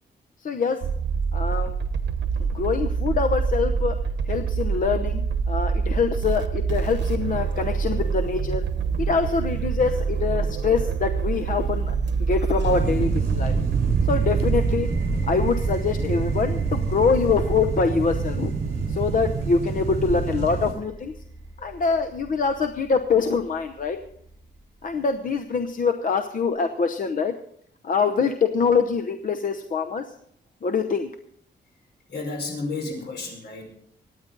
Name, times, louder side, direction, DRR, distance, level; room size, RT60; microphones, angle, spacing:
voice 1, 0.4-0.9 1.3-1.7 2.4-4.0 4.3-8.6 9.0-11.9 12.3-13.5 14.0-14.9 15.3-18.5 18.9-21.1 21.6-24.0 24.8-27.3 27.8-30.1 30.6-31.1, left 5 dB, 50° left, 8 dB, 0.9 m, -24 dB
sound 1, 0.8-14.7, right 5 dB, 80° right, 1.1 m, -26 dB
sound 2, 12.6-20.7, right 5 dB, 50° right, 4.8 m, -27 dB
sound 3, 13.5-24.9, right 2 dB, 20° right, 6.7 m, -36 dB
voice 2, 32.1-33.7, left 3 dB, 70° left, 2 dB, 5.3 m, -32 dB
24.5 x 9.8 x 4.0 m, 0.68 s
wide cardioid pair, 155°, 18 cm